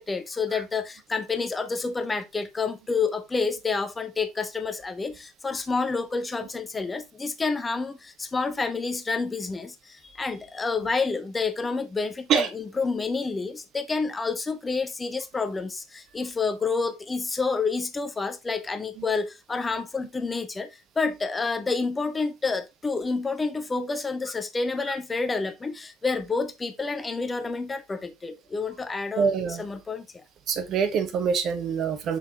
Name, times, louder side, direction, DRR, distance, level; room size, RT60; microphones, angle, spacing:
voice 1, 0.0-29.3 29.6-30.2, left 4 dB, 20° left, 0.9 m, -29 dB
voice 2, 29.1-29.7 30.5-32.2, right 6 dB, 50° right, 1.4 m, -25 dB
6.6 x 6.0 x 3.0 m
figure-of-eight pair, 60°, 0 cm